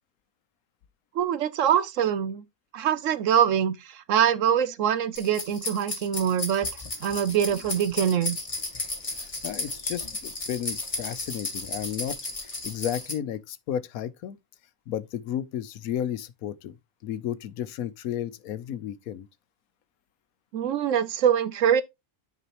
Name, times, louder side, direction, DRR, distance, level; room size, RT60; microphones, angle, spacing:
voice 1, 1.1-2.4 2.7-6.7 7.0-8.4 20.5-21.8, right 9 dB, 70° right, 0.9 m, -24 dB
sound 1, 5.2-13.1, left 2 dB, 25° left, 1.9 m, -34 dB
voice 2, 9.1-14.4 14.9-16.7 17.0-19.3, left 10 dB, 80° left, 1.1 m, -33 dB
9.8 x 4.9 x 3.0 m
omnidirectional pair, 1.5 m